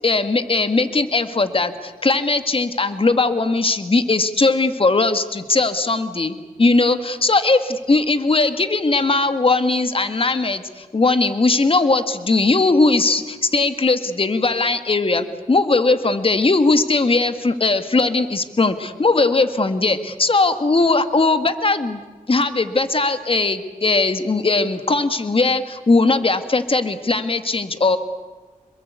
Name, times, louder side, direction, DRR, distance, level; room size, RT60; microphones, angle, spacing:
voice 1, 0.0-22.0 22.3-28.0, left 3 dB, 40° left, 10 dB, 2.0 m, -19 dB
27.0 x 22.0 x 8.4 m, 1.3 s
cardioid pair, 55°, 15 cm